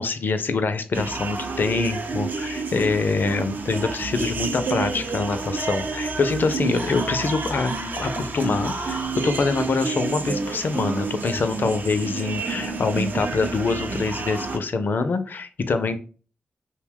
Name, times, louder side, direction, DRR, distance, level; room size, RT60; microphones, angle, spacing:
voice 1, 0.0-16.0, left 4 dB, 65° left, 9 dB, 0.4 m, -25 dB
sound 1, 0.9-14.6, right 3 dB, 55° right, 0.5 m, -29 dB
2.7 x 2.1 x 3.6 m, 0.39 s
cardioid pair, 40°, 4 cm